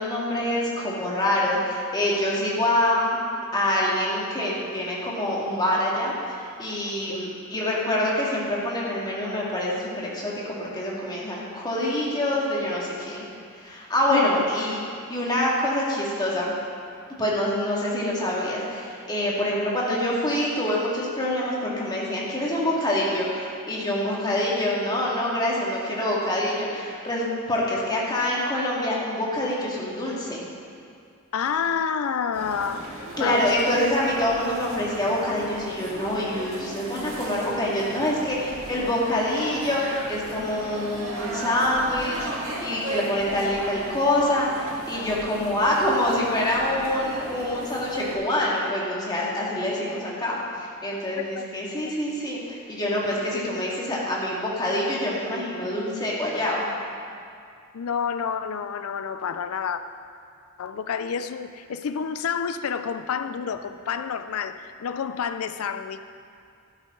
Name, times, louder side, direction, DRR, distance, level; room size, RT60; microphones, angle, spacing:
voice 1, 0.0-3.2 3.5-6.1 6.6-13.3 13.5-14.8 15.1-16.5 17.2-30.4 33.2-56.7, left 1 dB, 20° left, -5 dB, 2.2 m, -26 dB
voice 2, 14.1-14.5 31.3-33.9 35.1-35.2 42.7-42.8 51.2-51.4 57.7-59.8 60.6-66.0, left 6 dB, 70° left, 11 dB, 0.4 m, -29 dB
sound 1, 32.3-48.1, right 1 dB, 65° right, 2.3 m, -36 dB
12.0 x 11.5 x 3.8 m, 2.4 s
head